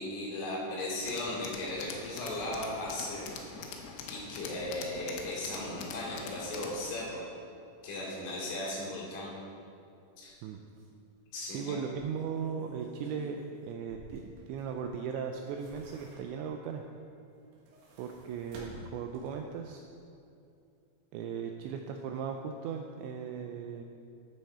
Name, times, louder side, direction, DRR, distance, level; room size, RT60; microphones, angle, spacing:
voice 1, 0.0-3.3 3.6-3.8 4.1-7.2 7.8-9.3 10.2-10.3 11.3-11.8, left 1 dB, 40° left, -7 dB, 2.7 m, -37 dB
Tools, 1.0-6.9, left 5 dB, 80° left, 3.1 m, -44 dB
sound 1, 10.2-10.4 10.8-10.9 11.8-14.9 15.3-16.6 17.4-19.5 19.9-20.0, right 1 dB, 70° right, 3.8 m, -52 dB
voice 2, 11.5-16.8 18.0-19.8 21.1-23.8, right 6 dB, 85° right, 4 dB, 2.6 m, -37 dB
10.5 x 9.2 x 4.3 m, 2.5 s
omnidirectional pair, 5.7 m